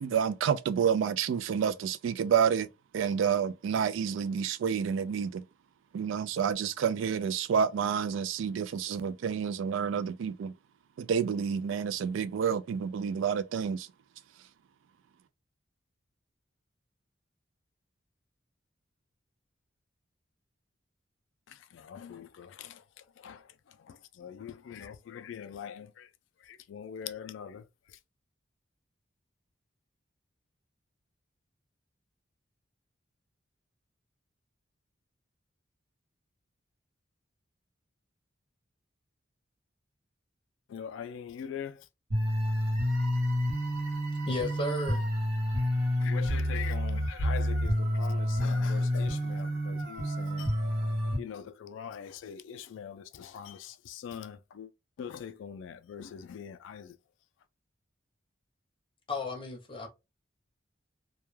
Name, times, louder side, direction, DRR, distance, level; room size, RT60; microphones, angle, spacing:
voice 1, 0.0-2.7 2.9-5.4 5.9-10.5 11.0-13.9, right 7 dB, 80° right, 0.3 m, -29 dB
voice 2, 21.5-22.8 23.2-23.4 23.9-26.1 26.5-27.7 40.7-41.8 46.0-50.6 51.2-54.7 55.0-57.0, left 8 dB, 75° left, 0.3 m, -42 dB
sound 1, 42.1-51.2, equal, 55° right, 0.8 m, -29 dB
voice 3, 44.3-45.0 59.1-59.9, left 1 dB, 25° left, 0.7 m, -33 dB
2.2 x 2.2 x 3.0 m
head